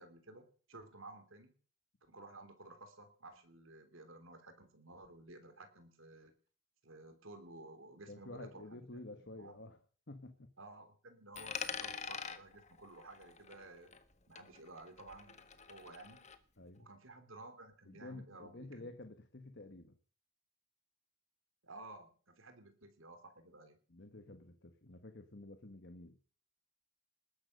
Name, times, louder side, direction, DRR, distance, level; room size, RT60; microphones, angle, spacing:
voice 1, 0.0-1.5 2.1-6.3 6.8-9.6 10.6-13.9 14.3-16.3 16.8-18.9 21.6-23.8, right 2 dB, 60° right, 8 dB, 3.4 m, -54 dB
voice 2, 8.1-9.8 10.1-10.5 16.6-16.9 17.9-20.0 23.9-26.2, left 2 dB, 50° left, 8 dB, 1.5 m, -51 dB
Coin (dropping), 11.3-14.1 14.4-16.4, left 6 dB, 30° left, 1.5 m, -45 dB
20.0 x 10.5 x 6.6 m, 0.43 s
head